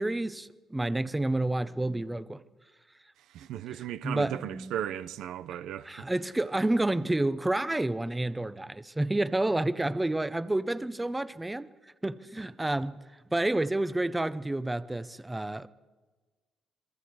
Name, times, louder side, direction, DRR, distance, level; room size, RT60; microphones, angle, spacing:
voice 1, 0.0-2.4 3.7-4.7 5.8-11.7 12.0-13.0 13.3-15.7, right 2 dB, 15° right, 0.8 m, -29 dB
voice 2, 3.3-6.1, right 11 dB, 85° right, 0.7 m, -36 dB
27.5 x 22.0 x 4.8 m
cardioid pair, 90°, 0 cm